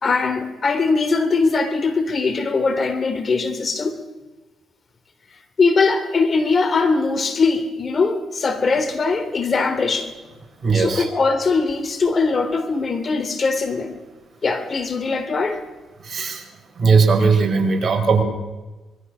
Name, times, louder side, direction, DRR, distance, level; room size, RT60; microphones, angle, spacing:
voice 1, 0.0-4.0 5.6-10.1 10.7-14.0 14.4-15.6, left 4 dB, 40° left, 3.3 m, -21 dB
voice 2, 10.6-11.1 16.0-16.4 16.7-18.2, right 4 dB, 40° right, 5.0 m, -18 dB
25.5 x 22.0 x 6.3 m
cardioid pair, 90°, 0 cm